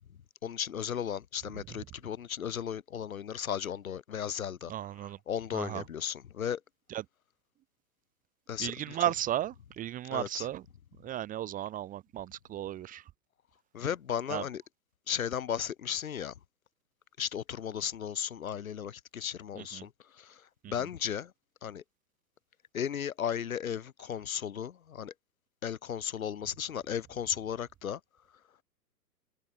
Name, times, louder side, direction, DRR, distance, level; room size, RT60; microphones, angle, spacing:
voice 1, 0.4-4.7 5.0-6.6 8.5-9.0 10.1-10.5 13.7-14.6 15.1-16.3 17.2-21.3 21.6-21.8 22.7-25.1 25.6-28.0, left 8 dB, 60° left, 4.4 m, -35 dB
voice 2, 4.7-5.2 5.5-5.8 6.9-7.0 8.6-10.6 11.0-13.0 14.3-14.4 19.6-19.8 20.6-20.7, right 12 dB, 15° right, 1.4 m, -35 dB
figure-of-eight pair, 110°, 48 cm